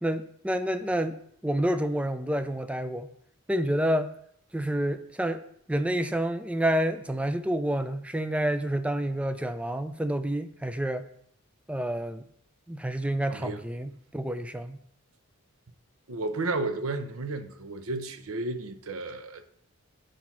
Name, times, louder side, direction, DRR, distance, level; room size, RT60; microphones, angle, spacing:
voice 1, 0.0-1.2 1.4-3.1 3.5-4.1 4.5-5.4 5.7-11.1 11.7-12.2 12.7-14.8, right 1 dB, 5° right, 0.3 m, -28 dB
voice 2, 13.3-13.6 16.1-19.6, right 2 dB, 75° right, 0.8 m, -33 dB
7.8 x 4.2 x 5.9 m
head